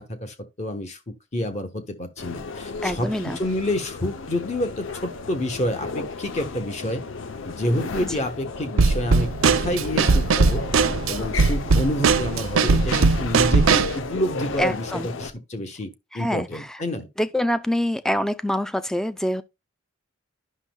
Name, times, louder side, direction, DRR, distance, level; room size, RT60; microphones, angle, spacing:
voice 1, 0.0-3.1 3.4-7.0 7.4-10.6 11.1-17.1, left 1 dB, 35° left, 1.1 m, -28 dB
sound 1, 2.2-15.3, left 4 dB, 70° left, 0.6 m, -34 dB
voice 2, 2.8-3.4 14.6-15.1 16.1-16.8 17.2-19.4, equal, 5° left, 0.3 m, -25 dB
Drum kit / Snare drum, 8.8-14.0, right 4 dB, 80° right, 0.6 m, -19 dB
9.9 x 6.2 x 2.2 m
head